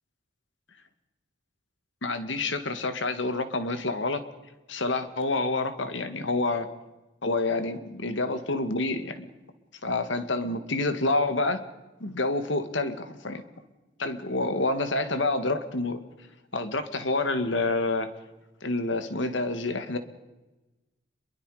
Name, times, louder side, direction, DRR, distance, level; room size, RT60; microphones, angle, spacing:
voice 1, 2.0-4.2 4.7-6.7 7.2-9.3 9.8-11.6 12.0-13.4 14.0-16.0 16.5-18.1 18.6-20.0, left 2 dB, 70° left, 9 dB, 1.9 m, -28 dB
27.5 x 22.5 x 5.0 m, 1.1 s
head